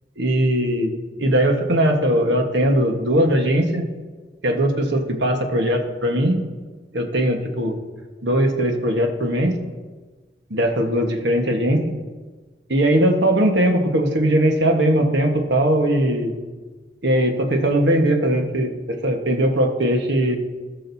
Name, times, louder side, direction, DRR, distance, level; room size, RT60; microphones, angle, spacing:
voice 1, 0.2-0.9 1.2-3.9 4.4-6.4 6.9-7.8 8.2-9.6 10.5-11.8 12.7-16.3 17.0-18.7 19.0-20.4, right 1 dB, 75° right, 3 dB, 1.3 m, -19 dB
18.5 x 6.4 x 2.7 m, 1.3 s
head